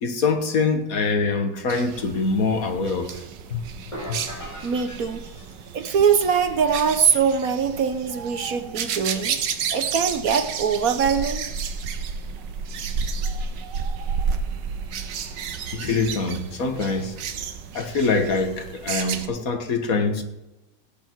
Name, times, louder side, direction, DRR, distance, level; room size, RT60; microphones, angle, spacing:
voice 1, 0.0-3.2 3.5-3.6 4.1-4.2 15.7-17.2 17.7-20.2, left 4 dB, 55° left, 1.8 m, -24 dB
sound 1, 1.7-19.3, right 6 dB, 85° right, 1.6 m, -31 dB
sound 2, 3.9-6.0, equal, 15° left, 3.9 m, -39 dB
voice 2, 4.2-5.2 5.7-9.4 9.7-11.5, right 6 dB, 60° right, 1.3 m, -22 dB
17.5 x 8.0 x 4.6 m
omnidirectional pair, 1.9 m